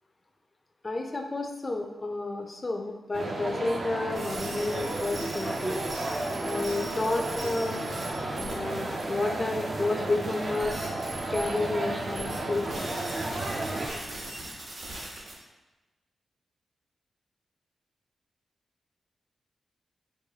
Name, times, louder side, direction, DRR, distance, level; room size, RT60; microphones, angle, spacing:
voice 1, 0.8-5.8 6.4-7.9 8.4-10.7 11.3-12.9, left 2 dB, 35° left, 3 dB, 0.5 m, -31 dB
sound 1, 3.1-13.9, right 2 dB, 45° right, 0.4 m, -33 dB
sound 2, 4.1-15.3, right 1 dB, 70° right, 1.0 m, -42 dB
4.6 x 2.2 x 2.8 m, 1.1 s
cardioid pair, 70°, 0 cm